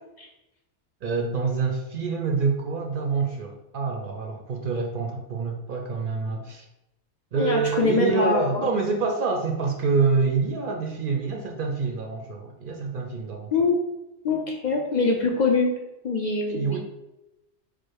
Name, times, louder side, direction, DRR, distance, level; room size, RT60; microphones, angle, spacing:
voice 1, 1.0-6.7 7.3-13.5 16.5-16.8, right 4 dB, 60° right, 1 dB, 0.6 m, -26 dB
voice 2, 7.3-8.7 13.5-13.9 14.2-15.7 16.0-16.8, left 3 dB, 50° left, 0 dB, 0.6 m, -23 dB
4.7 x 2.0 x 4.6 m, 0.93 s
omnidirectional pair, 1.2 m